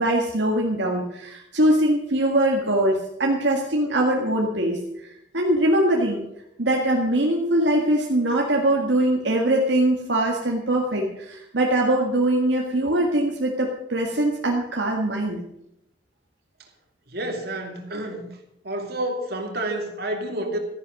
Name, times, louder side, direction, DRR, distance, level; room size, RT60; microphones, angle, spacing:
voice 1, 0.0-6.2 6.6-15.4, right 1 dB, 75° right, -1 dB, 1.9 m, -22 dB
voice 2, 17.1-18.4 18.6-20.6, right 1 dB, 55° right, 3 dB, 2.8 m, -29 dB
14.0 x 10.5 x 6.5 m, 0.83 s
head